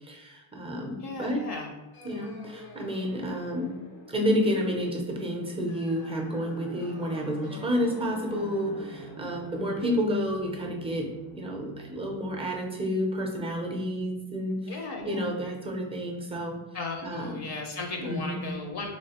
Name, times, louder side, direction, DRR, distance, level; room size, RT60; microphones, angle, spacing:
voice 1, 0.0-1.4 2.0-3.7 4.1-11.1 11.4-16.6 17.0-17.4 18.0-18.4, equal, 10° right, 1 dB, 0.4 m, -30 dB
voice 2, 1.0-1.7 14.7-15.2 16.7-18.9, left 3 dB, 50° left, 2 dB, 0.6 m, -36 dB
sound 1, 1.9-12.4, equal, 85° left, 1.3 m, -46 dB
3.6 x 3.1 x 2.8 m, 1.1 s
cardioid pair, 130°, 50 cm